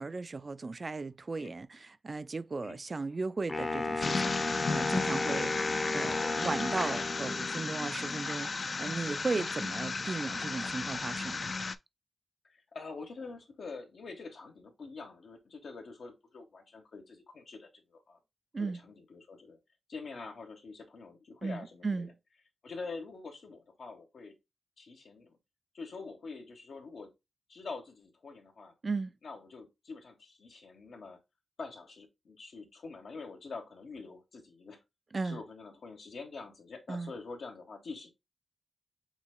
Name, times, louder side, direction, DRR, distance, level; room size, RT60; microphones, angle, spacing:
voice 1, 0.0-5.5 5.9-11.5 18.5-18.8 21.4-22.1 28.8-29.1 35.1-35.4 36.9-37.1, right 3 dB, 40° right, 0.3 m, -36 dB
Wind instrument woodwind instrument, 3.5-7.7, left 3 dB, 30° left, 0.7 m, -34 dB
sound 1, 4.0-11.8, left 4 dB, 50° left, 0.4 m, -35 dB
voice 2, 12.5-18.2 18.6-19.6 19.9-22.1 22.6-24.3 24.8-25.4 25.7-27.1 27.5-28.7 29.2-31.2 31.6-34.8 35.2-38.1, left 4 dB, 75° left, 1.4 m, -45 dB
7.0 x 2.8 x 2.2 m
wide cardioid pair, 90°, 0 cm